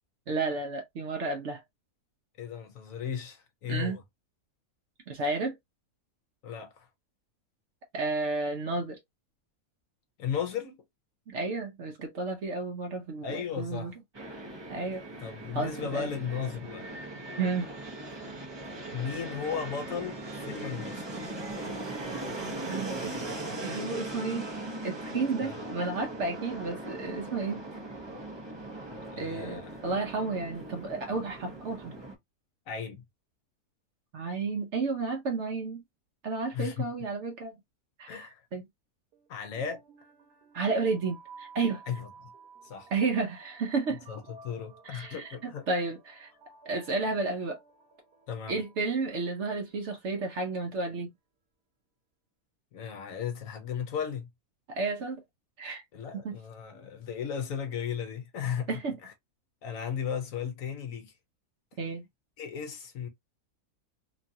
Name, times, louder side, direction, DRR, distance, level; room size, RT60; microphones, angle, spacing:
voice 1, 0.3-1.6 3.7-4.0 5.1-5.6 7.9-9.0 11.3-13.9 14.7-15.0 15.5-16.1 17.4-17.7 22.6-23.2 23.6-24.5 24.8-27.6 29.2-31.9 34.1-35.8 36.2-37.6 38.0-38.6 40.5-41.8 42.9-44.0 44.8-46.3 46.7-47.6 48.5-51.1 54.7-55.2 55.6-55.8 56.1-56.4 58.7-59.0 61.8-62.0, right 3 dB, 60° right, 0.8 m, -32 dB
voice 2, 2.4-4.0 6.4-6.9 10.2-10.8 13.2-13.9 15.2-16.9 18.9-21.1 25.4-25.6 29.1-29.7 32.7-33.0 36.5-36.9 38.1-38.4 39.3-39.8 41.9-42.1 42.6-42.9 44.1-45.7 48.3-48.6 52.7-54.3 55.9-59.1 59.6-61.1 62.4-63.1, left 7 dB, 65° left, 1.0 m, -35 dB
Fixed-wing aircraft airplane, 14.1-32.2, right 2 dB, 25° right, 0.6 m, -39 dB
sound 1, 39.1-50.2, right 4 dB, 80° right, 1.3 m, -54 dB
3.0 x 2.3 x 2.6 m
omnidirectional pair, 1.6 m